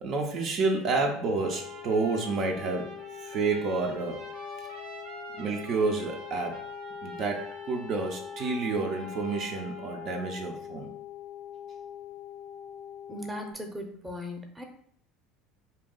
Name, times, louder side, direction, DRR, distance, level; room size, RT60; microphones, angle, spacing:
voice 1, 0.0-4.3 5.4-6.6 7.0-10.9, right 3 dB, 50° right, 1 dB, 0.5 m, -29 dB
sound 1, 1.2-13.5, left 9 dB, 30° left, 0.4 m, -42 dB
Trumpet, 1.4-10.2, right 2 dB, 80° right, 0.9 m, -48 dB
voice 2, 13.1-14.6, left 1 dB, 10° right, 4 dB, 0.7 m, -38 dB
2.6 x 2.2 x 3.7 m, 0.63 s
hypercardioid pair, 75°, 0 cm